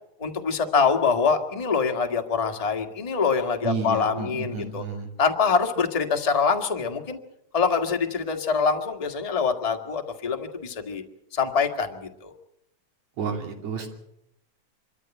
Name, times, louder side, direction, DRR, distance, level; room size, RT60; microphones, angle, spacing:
voice 1, 0.2-4.8 5.2-7.2 7.5-11.0 11.3-12.3, left 5 dB, 20° left, 4 dB, 1.1 m, -24 dB
voice 2, 3.6-5.1 13.2-13.9, right 5 dB, 70° right, 4 dB, 4.0 m, -31 dB
25.0 x 13.5 x 8.9 m, 0.82 s
omnidirectional pair, 3.4 m